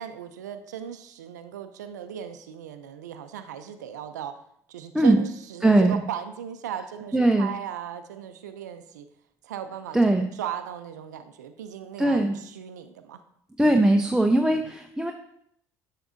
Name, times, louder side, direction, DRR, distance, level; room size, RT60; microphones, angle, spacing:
voice 1, 0.0-4.4 4.7-9.1 9.4-13.2 14.3-14.7, right 9 dB, 90° right, 9 dB, 0.4 m, -37 dB
voice 2, 5.6-6.0 7.1-7.5 9.9-10.3 12.0-12.4 13.6-15.1, right 1 dB, 5° right, 3 dB, 0.6 m, -20 dB
7.8 x 6.4 x 2.6 m, 0.69 s
hypercardioid pair, 60°, 9 cm